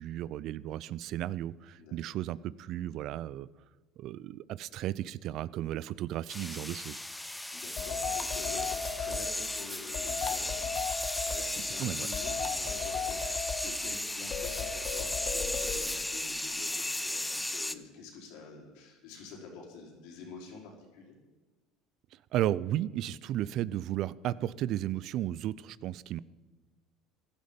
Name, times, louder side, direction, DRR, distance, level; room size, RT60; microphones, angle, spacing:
voice 1, 0.0-3.5 4.0-7.0 11.8-12.1 22.3-26.2, right 13 dB, 60° right, 20 dB, 0.4 m, -34 dB
sound 1, 6.3-17.8, left 1 dB, 10° left, 0.7 m, -35 dB
voice 2, 7.5-21.2, left 4 dB, 75° left, -1 dB, 4.7 m, -48 dB
sound 2, 7.8-9.3 9.9-11.5 12.1-13.7 14.3-15.8, left 5 dB, 45° left, 1.5 m, -35 dB
15.0 x 11.5 x 5.2 m, 1.2 s
supercardioid pair, 90°, 0 cm